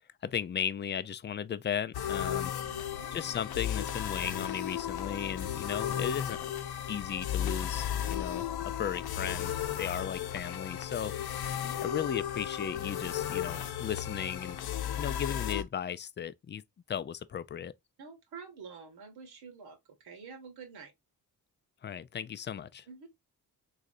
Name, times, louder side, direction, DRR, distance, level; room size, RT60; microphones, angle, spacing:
voice 1, 0.0-2.6 3.1-6.4 6.9-8.5 8.8-11.1 11.8-14.6 15.0-16.6 16.9-17.7 21.8-22.9, left 8 dB, 30° left, 0.4 m, -36 dB
sound 1, 1.9-15.6, left 10 dB, 80° left, 0.7 m, -35 dB
voice 2, 2.6-3.2 11.7-11.9 18.0-20.9 22.9-23.1, right 5 dB, 85° right, 1.6 m, -48 dB
3.8 x 3.2 x 2.5 m
cardioid pair, 85°, 37 cm